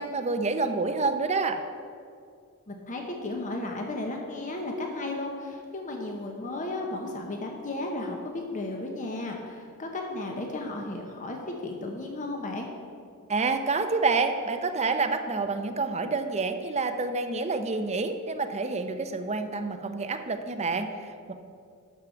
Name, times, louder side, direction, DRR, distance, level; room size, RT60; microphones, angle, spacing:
voice 1, 0.0-1.6 13.3-21.3, right 3 dB, 30° right, 7 dB, 0.6 m, -28 dB
voice 2, 2.7-12.7, left 2 dB, 35° left, 1 dB, 0.9 m, -34 dB
12.0 x 4.8 x 7.0 m, 2.3 s
head